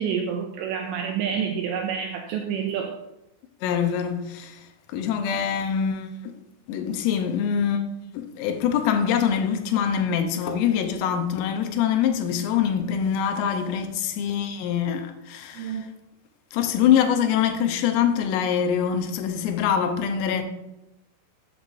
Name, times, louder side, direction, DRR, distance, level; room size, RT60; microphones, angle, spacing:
voice 1, 0.0-2.9 15.5-15.8, right 7 dB, 85° right, 2.5 m, -28 dB
voice 2, 3.6-6.3 6.7-7.8 8.1-15.9 16.5-20.4, left 8 dB, 85° left, 3.4 m, -24 dB
13.5 x 7.8 x 2.6 m
omnidirectional pair, 5.8 m